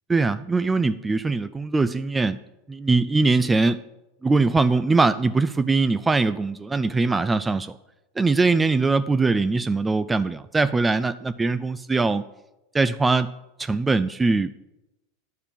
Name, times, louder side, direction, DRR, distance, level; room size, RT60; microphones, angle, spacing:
voice 1, 0.1-2.4 2.7-3.8 4.2-7.8 8.2-12.2 12.7-13.3 13.6-14.5, right 3 dB, 15° right, 13 dB, 0.3 m, -21 dB
10.0 x 4.7 x 7.2 m, 0.96 s
supercardioid pair, 120°, 0 cm